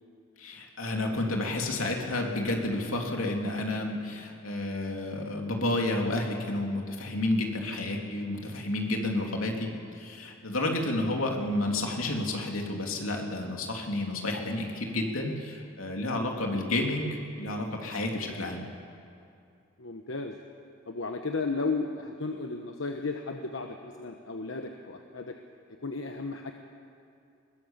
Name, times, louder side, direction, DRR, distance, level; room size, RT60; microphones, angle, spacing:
voice 1, 0.4-18.6, left 2 dB, 85° left, 1 dB, 3.1 m, -30 dB
voice 2, 19.8-20.4 20.9-25.4 25.8-26.5, left 3 dB, 70° left, 4 dB, 1.1 m, -34 dB
21.5 x 21.5 x 7.4 m, 2.5 s
head